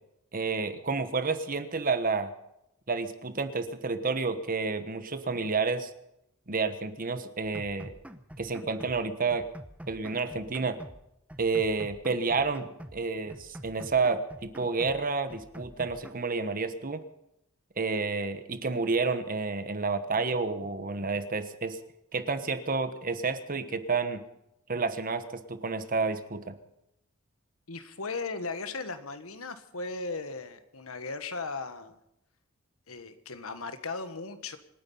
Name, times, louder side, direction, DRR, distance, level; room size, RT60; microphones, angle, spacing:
voice 1, 0.3-2.3 2.9-5.9 6.5-7.9 8.4-9.5 9.9-10.8 11.4-12.7 12.9-17.0 17.8-21.8 22.1-24.2 24.7-25.2 25.5-26.5, right 4 dB, 40° right, 10 dB, 1.2 m, -30 dB
sound 1, 7.5-9.0 9.3-11.0 11.3-13.0 13.3-15.0 15.3-16.1, equal, 5° right, 0.9 m, -46 dB
voice 2, 27.7-32.0 32.9-34.6, left 3 dB, 80° left, 10 dB, 1.5 m, -37 dB
26.0 x 10.0 x 5.5 m, 0.83 s
head